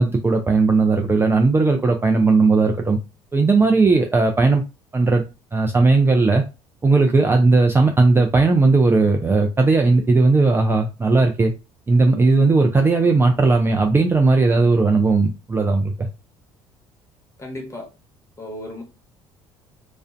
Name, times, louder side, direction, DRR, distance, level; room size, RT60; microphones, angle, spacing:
voice 1, 0.0-3.0 3.3-4.6 4.9-5.2 5.5-6.4 6.8-11.5 11.9-15.9, right 3 dB, 15° right, 0.4 m, -17 dB
voice 2, 17.4-17.9 18.4-18.8, left 1 dB, 20° left, 1.1 m, -34 dB
2.4 x 2.1 x 2.5 m
hypercardioid pair, 65°, 13 cm